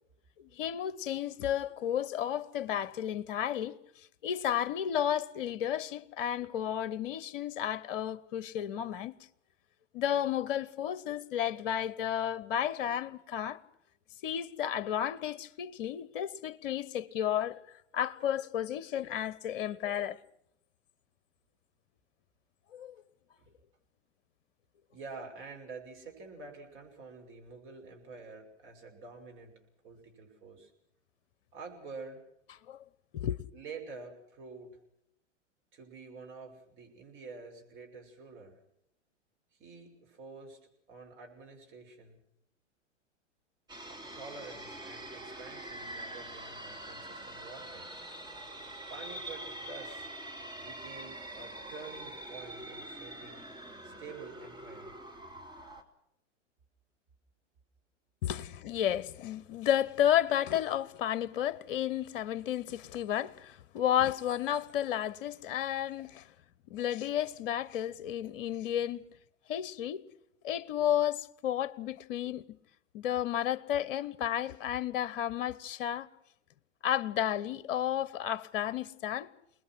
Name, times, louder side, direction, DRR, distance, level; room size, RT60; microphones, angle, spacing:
voice 1, 0.4-3.8 4.2-9.1 9.9-13.6 14.2-17.6 17.9-20.2 22.7-23.0 32.7-32.8 33.1-33.4 58.2-66.3 66.7-69.0 69.5-70.0 70.4-72.6 72.9-76.1 76.8-79.3, left 10 dB, 45° left, 1.1 m, -32 dB
voice 2, 24.9-29.6 29.8-30.7 31.5-32.2 33.5-34.8 35.7-38.6 39.5-40.6 40.9-42.2 43.9-48.0 48.9-50.1 50.6-53.4 53.8-55.0, right 4 dB, 30° right, 6.4 m, -48 dB
sound 1, 43.7-55.8, right 1 dB, 10° right, 2.6 m, -44 dB
29.0 x 20.5 x 6.2 m
figure-of-eight pair, 105°, 37 cm